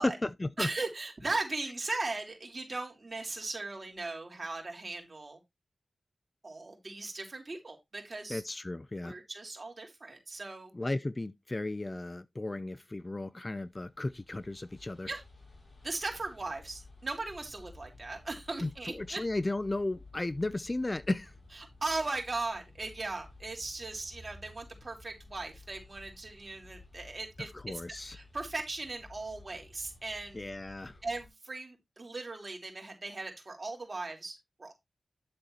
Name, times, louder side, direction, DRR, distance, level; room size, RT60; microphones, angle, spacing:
voice 1, 0.0-0.7 8.3-9.2 10.7-15.1 18.6-21.3 27.5-28.2 30.3-31.0, left 2 dB, 25° left, 0.4 m, -34 dB
voice 2, 0.6-5.4 6.4-8.4 9.0-10.7 15.1-15.2 15.8-19.2 21.8-27.8 28.1-30.4 31.0-34.7, right 3 dB, 40° right, 3.5 m, -38 dB
sound 1, 13.7-31.3, left 2 dB, 45° left, 6.6 m, -54 dB
9.7 x 7.6 x 2.8 m
wide cardioid pair, 75°, 0 cm